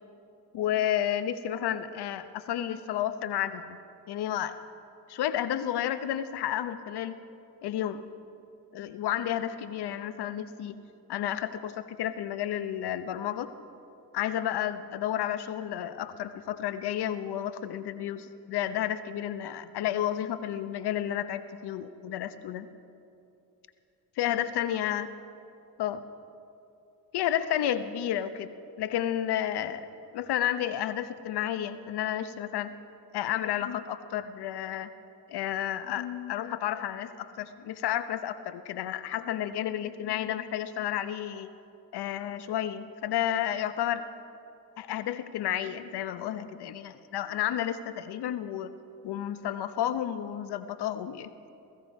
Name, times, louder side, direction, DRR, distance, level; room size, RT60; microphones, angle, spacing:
voice 1, 0.5-3.8 4.1-4.5 5.1-7.2 7.6-8.0 8.7-10.8 11.1-13.5 14.1-22.7 24.2-25.1 25.8-26.0 27.1-32.7 33.1-34.9 35.3-41.5 41.9-44.0 44.8-48.7 49.0-51.3, left 11 dB, 65° left, 12 dB, 1.0 m, -31 dB
17.0 x 15.0 x 5.4 m, 2.7 s
supercardioid pair, 65°, 42 cm